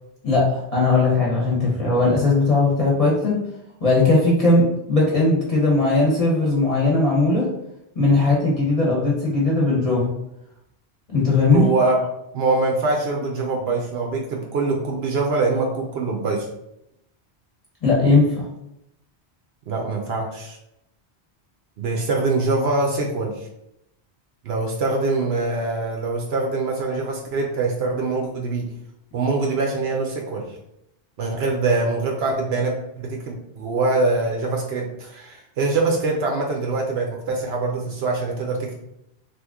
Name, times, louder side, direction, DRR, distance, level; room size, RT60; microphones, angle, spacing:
voice 1, 0.2-3.4 3.8-7.5 8.0-10.1 11.1-11.7 17.8-18.5, left 3 dB, 35° left, -5 dB, 0.8 m, -18 dB
voice 2, 11.5-12.0 12.3-16.5 19.7-20.6 21.8-23.5 24.4-28.7 29.1-30.6 31.2-38.7, right 3 dB, 70° right, 0 dB, 0.8 m, -24 dB
2.9 x 2.4 x 3.5 m, 0.82 s
omnidirectional pair, 1.1 m